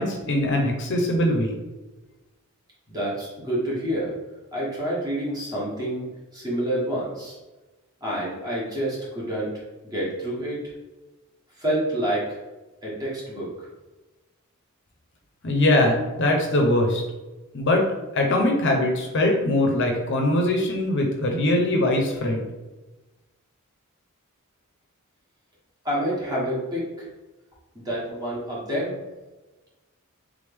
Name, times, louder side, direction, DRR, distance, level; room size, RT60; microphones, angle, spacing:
voice 1, 0.0-1.5 15.4-17.0 17.5-17.8 18.1-22.4, left 1 dB, 55° left, 1 dB, 0.7 m, -22 dB
voice 2, 2.9-4.1 4.5-6.0 6.3-7.4 8.0-9.5 9.8-10.6 11.6-12.4 12.8-13.7 25.8-27.1 27.7-28.9, right 1 dB, 15° right, -6 dB, 1.5 m, -28 dB
3.5 x 3.4 x 3.4 m, 1.1 s
head